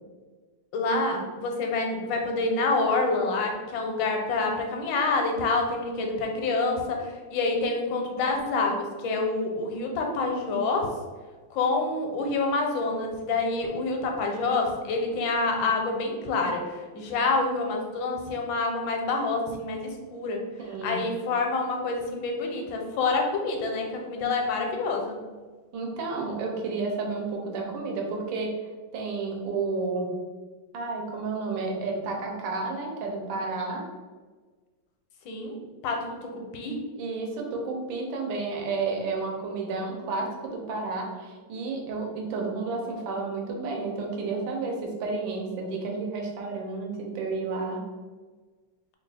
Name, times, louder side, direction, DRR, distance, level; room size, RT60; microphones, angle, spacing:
voice 1, 0.7-10.9 11.5-16.7 16.9-20.4 20.8-25.2 35.2-35.6 35.8-36.8, left 3 dB, 80° left, 2 dB, 1.3 m, -27 dB
voice 2, 20.6-21.0 25.7-28.5 28.9-30.1 30.7-33.8 37.0-47.8, right 3 dB, 85° right, 1 dB, 1.5 m, -31 dB
3.4 x 2.3 x 4.0 m, 1.4 s
omnidirectional pair, 2.1 m